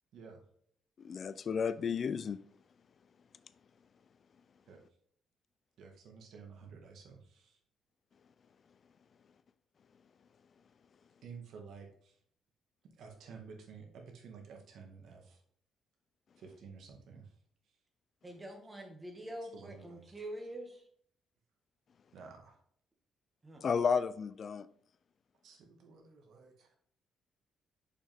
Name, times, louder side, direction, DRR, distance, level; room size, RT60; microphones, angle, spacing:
voice 1, 1.0-2.4 23.6-24.7, left 6 dB, 50° left, 14 dB, 0.4 m, -32 dB
voice 2, 5.8-7.6 11.2-12.1 13.0-15.4 16.4-17.3 19.5-20.1 22.1-22.6 25.4-26.7, right 5 dB, 75° right, 3 dB, 1.8 m, -52 dB
voice 3, 18.2-20.8 23.4-23.6, right 1 dB, 20° right, 2 dB, 2.0 m, -45 dB
6.8 x 5.4 x 3.6 m, 0.63 s
cardioid pair, 90°, 0 cm